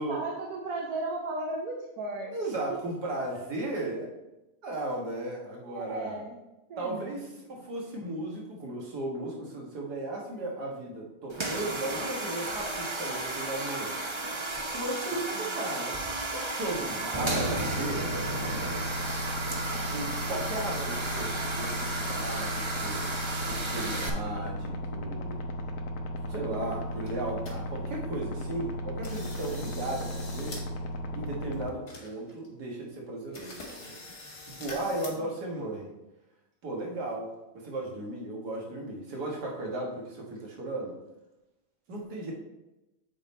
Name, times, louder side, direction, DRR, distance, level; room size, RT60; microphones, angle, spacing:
voice 1, 0.0-2.8 3.3-4.0 5.6-6.4 6.7-7.1 15.3-15.5 19.7-20.0 35.2-35.3, right 2 dB, 70° right, 0 dB, 1.3 m, -37 dB
voice 2, 2.3-4.1 4.6-6.2 6.8-14.0 14.7-16.0 16.3-18.1 19.9-23.1 23.4-25.4 26.3-30.6 31.2-34.0 34.6-35.9 36.6-41.0 41.9-42.3, right 2 dB, 90° right, -1 dB, 2.0 m, -36 dB
sound 1, 11.3-24.1, right 2 dB, 45° right, 0.3 m, -33 dB
sound 2, 17.2-31.7, equal, 60° left, 1.1 m, -35 dB
sound 3, 27.1-27.5 28.0-28.1 28.5-28.7 29.0-30.6 30.9-31.0 31.5-31.6 31.9-32.5 32.8-32.9 33.3-35.1, left 2 dB, 90° left, 2.4 m, -44 dB
8.4 x 3.9 x 4.2 m, 0.98 s
omnidirectional pair, 1.7 m